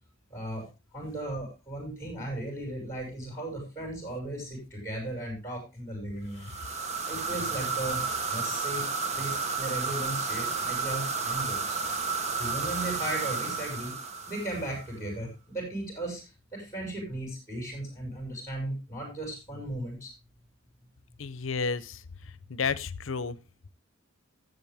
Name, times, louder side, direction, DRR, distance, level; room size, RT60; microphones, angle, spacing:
voice 1, 0.3-0.7 0.9-8.0 8.3-8.9 9.1-11.8 12.4-13.9 14.3-16.2 16.5-20.1, right 1 dB, 15° left, -3 dB, 5.5 m, -36 dB
sound 1, 6.4-14.9, right 4 dB, 35° right, 1.0 m, -32 dB
voice 2, 21.2-22.0 22.5-23.4, left 5 dB, 70° left, 17 dB, 0.7 m, -31 dB
12.5 x 7.9 x 3.5 m, 0.27 s
head